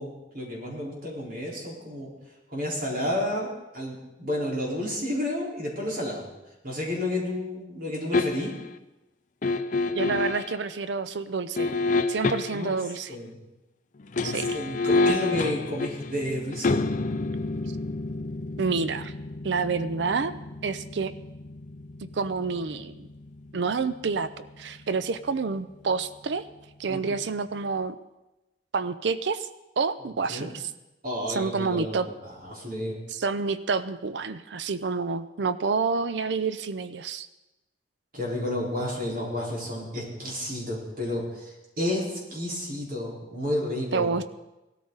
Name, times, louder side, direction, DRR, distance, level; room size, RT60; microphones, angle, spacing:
voice 1, 0.0-2.1 2.5-6.2 6.6-8.5 12.5-12.7 13.1-13.4 14.2-16.9 26.9-27.1 30.3-30.5 31.0-33.0 38.1-44.1, left 1 dB, 55° right, -3 dB, 4.4 m, -31 dB
sound 1, 8.1-8.7 9.4-10.6 11.6-12.7 14.0-24.9 25.2-25.4, left 3 dB, 45° left, 0.6 m, -29 dB
voice 2, 9.9-11.7 12.1-13.1 14.2-14.6 18.6-19.1 19.4-20.3 20.6-21.1 22.0-23.1 23.5-26.4 26.8-28.0 28.7-29.5 29.8-30.7 31.3-32.1 33.1-37.3 43.9-44.4, right 4 dB, 70° right, 13 dB, 0.5 m, -28 dB
18.0 x 13.5 x 4.0 m, 1.0 s
head